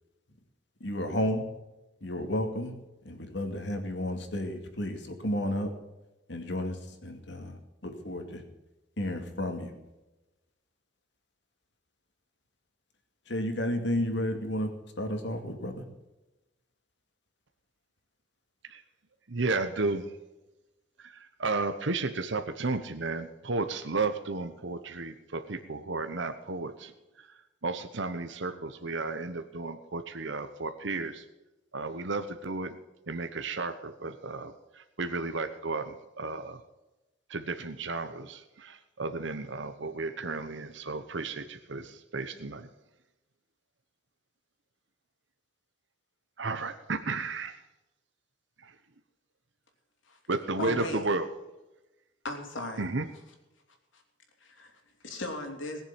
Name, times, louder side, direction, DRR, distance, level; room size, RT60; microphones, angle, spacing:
voice 1, 0.8-1.4 2.0-2.7 3.0-5.7 6.3-8.4 9.0-9.7 13.3-14.7 15.0-15.7, left 1 dB, 65° left, 5 dB, 2.4 m, -32 dB
voice 2, 19.3-20.1 21.0-26.9 27.2-27.3 27.6-31.2 31.7-32.8 33.1-36.6 37.3-42.7 46.4-47.6 48.6-48.7 50.3-51.3 52.8-53.0, right 3 dB, 75° right, 8 dB, 1.0 m, -33 dB
voice 3, 50.6-51.0 52.2-52.9 53.9-54.0 54.4-55.8, left 1 dB, 85° left, 3 dB, 3.3 m, -37 dB
20.0 x 7.3 x 7.4 m, 1.0 s
head